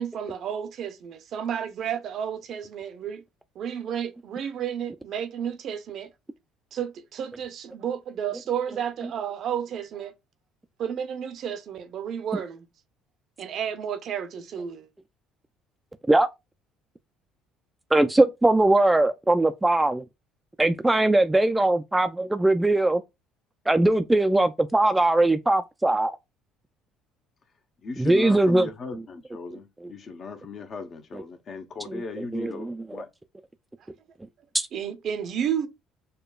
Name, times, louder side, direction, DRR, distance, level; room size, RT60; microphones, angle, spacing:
voice 1, 0.0-3.2 3.6-6.1 6.7-10.1 10.8-12.7 13.4-14.9 34.7-35.7, right 8 dB, 60° right, 0.6 m, -31 dB
voice 2, 17.9-20.0 20.6-23.0 23.7-26.1 28.0-28.7 29.8-29.9 31.1-31.2 31.9-32.0 32.3-32.5 34.5-34.7, right 2 dB, 15° right, 0.3 m, -21 dB
voice 3, 27.8-33.1, left 3 dB, 50° left, 0.8 m, -37 dB
6.5 x 2.2 x 2.3 m
hypercardioid pair, 70°, 0 cm